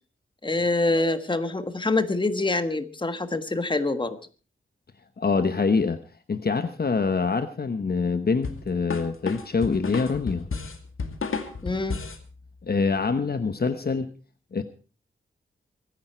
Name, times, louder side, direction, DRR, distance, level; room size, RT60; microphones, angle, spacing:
voice 1, 0.4-4.2 11.6-12.0, left 2 dB, 20° left, 9 dB, 1.4 m, -25 dB
voice 2, 5.2-6.0 6.3-10.5 12.6-14.1 14.5-14.6, left 4 dB, 45° left, 9 dB, 1.0 m, -25 dB
sound 1, 8.4-12.2, left 4 dB, 75° left, 2.3 m, -32 dB
24.5 x 10.5 x 4.4 m, 0.37 s
wide cardioid pair, 115°, 21 cm